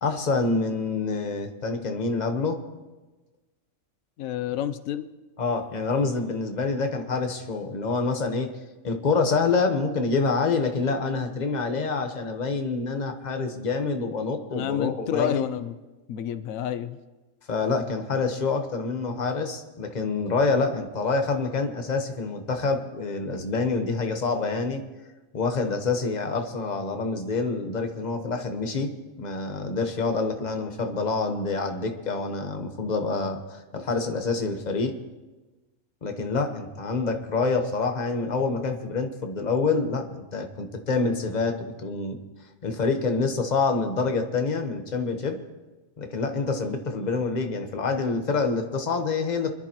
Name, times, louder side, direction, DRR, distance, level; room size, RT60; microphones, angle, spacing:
voice 1, 0.0-2.6 5.4-8.5 8.8-15.4 17.5-24.8 25.3-35.0 36.0-42.2 42.6-45.4 46.0-49.5, left 4 dB, 35° left, 5 dB, 1.2 m, -27 dB
voice 2, 4.2-5.1 14.5-15.8 16.1-17.0, left 10 dB, 85° left, 12 dB, 1.0 m, -29 dB
25.5 x 11.0 x 3.0 m, 1.2 s
omnidirectional pair, 1.4 m